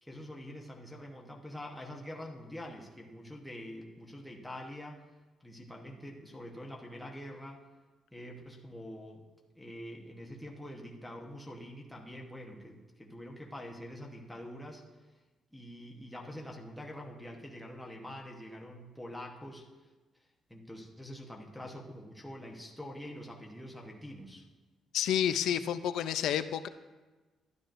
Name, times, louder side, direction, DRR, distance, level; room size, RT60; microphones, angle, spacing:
voice 1, 0.0-5.0 5.4-7.6 8.1-9.2 9.5-14.8 15.5-19.6 20.5-24.5, equal, ahead, -1 dB, 1.0 m, -45 dB
voice 2, 24.9-26.7, left 10 dB, 80° left, 12 dB, 0.4 m, -30 dB
12.5 x 10.5 x 2.6 m, 1.2 s
cardioid pair, 145°, 0 cm